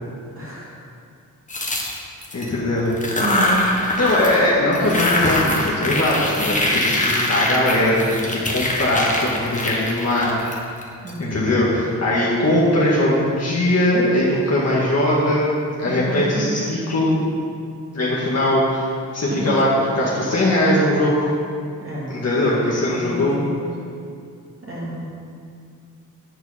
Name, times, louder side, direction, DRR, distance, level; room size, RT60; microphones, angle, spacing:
voice 1, 0.4-0.8 2.3-2.5 3.2-3.7 11.0-11.5 15.8-16.6 19.3-19.8 21.8-22.2 22.9-23.7 24.6-25.0, right 1 dB, 40° right, -6 dB, 2.5 m, -29 dB
sound 1, 1.5-2.5 2.9-4.5 4.7-11.1, left 1 dB, 25° left, 1.6 m, -23 dB
voice 2, 2.3-3.0 4.0-10.6 11.2-15.4 15.8-17.2 17.9-18.9 19.1-19.7 20.0-21.3 22.1-23.4, left 1 dB, 50° left, -6 dB, 1.9 m, -20 dB
11.0 x 6.5 x 5.1 m, 2.4 s
cardioid pair, 75°, 33 cm